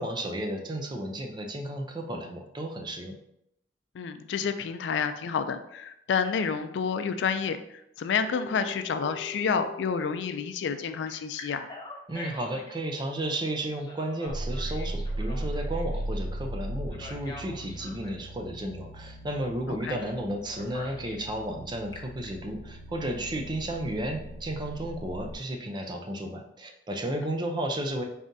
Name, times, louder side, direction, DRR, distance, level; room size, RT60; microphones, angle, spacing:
voice 1, 0.0-3.1 12.1-28.0, right 1 dB, 25° right, 3 dB, 0.5 m, -33 dB
voice 2, 3.9-11.7 19.7-20.0, left 6 dB, 80° left, 9 dB, 0.3 m, -29 dB
Telephone, 8.3-10.5 11.1-12.8 13.8-16.0 16.9-18.2 20.0-20.2 20.5-21.3 21.7-22.3, left 3 dB, 25° left, 0.6 m, -44 dB
sound 1, 14.3-25.3, right 1 dB, 85° right, 0.4 m, -37 dB
4.1 x 3.6 x 2.6 m, 0.78 s
head